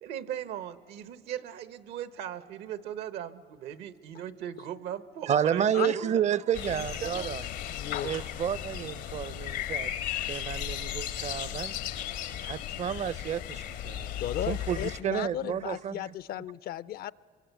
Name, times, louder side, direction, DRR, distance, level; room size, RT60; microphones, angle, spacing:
voice 1, 0.0-6.2 6.7-7.3, right 10 dB, 85° right, 1.1 m, -38 dB
voice 2, 5.3-7.4 8.0-9.9 10.3-11.7 12.4-16.1, right 9 dB, 45° right, 0.5 m, -31 dB
sound 1, 6.5-15.0, left 11 dB, 90° left, 1.6 m, -35 dB
voice 3, 7.7-8.1 14.2-17.1, left 12 dB, 65° left, 0.5 m, -35 dB
26.0 x 23.0 x 8.1 m
cardioid pair, 110°, 17 cm